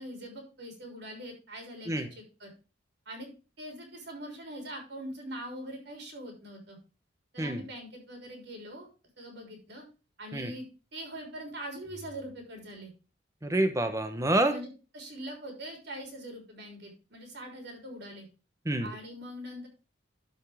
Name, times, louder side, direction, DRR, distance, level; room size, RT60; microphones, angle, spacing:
voice 1, 0.0-2.0 2.4-2.5 3.1-3.3 3.6-6.8 7.3-8.9 9.2-9.8 10.2-12.9 14.5-14.7 14.9-18.3 18.8-19.7, equal, 60° right, 2 dB, 3.4 m, -42 dB
voice 2, 13.4-14.5 18.6-18.9, right 1 dB, 15° right, 8 dB, 0.9 m, -27 dB
12.5 x 5.4 x 3.5 m, 0.32 s
head